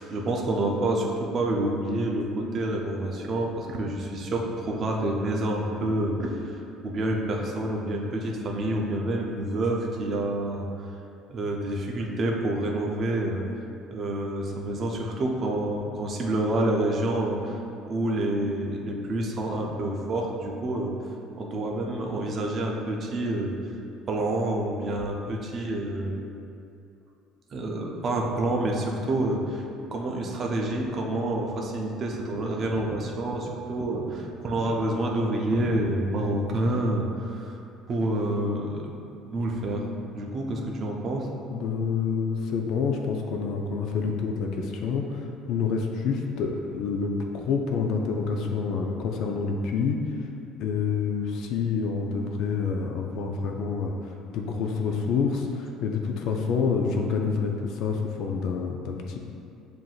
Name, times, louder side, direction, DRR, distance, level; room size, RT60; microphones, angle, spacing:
voice 1, 0.0-10.7 11.3-13.5 13.9-17.6 17.9-20.9 21.4-23.5 24.1-26.1 27.5-29.6 29.9-37.5 37.9-39.8 40.1-41.3, right 1 dB, 30° right, 0 dB, 0.4 m, -28 dB
voice 2, 41.5-50.3 50.6-59.2, left 5 dB, 50° left, 2 dB, 0.3 m, -28 dB
7.3 x 2.6 x 2.3 m, 2.6 s
cardioid pair, 180°, 0 cm